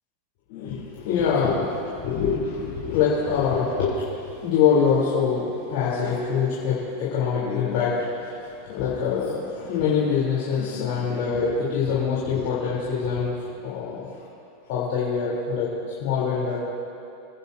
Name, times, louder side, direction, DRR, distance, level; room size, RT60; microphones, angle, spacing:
voice 1, 0.5-14.1 14.7-16.6, left 6 dB, 65° left, -8 dB, 3.6 m, -24 dB
24.5 x 9.6 x 2.8 m, 2.6 s
hypercardioid pair, 115°, 0 cm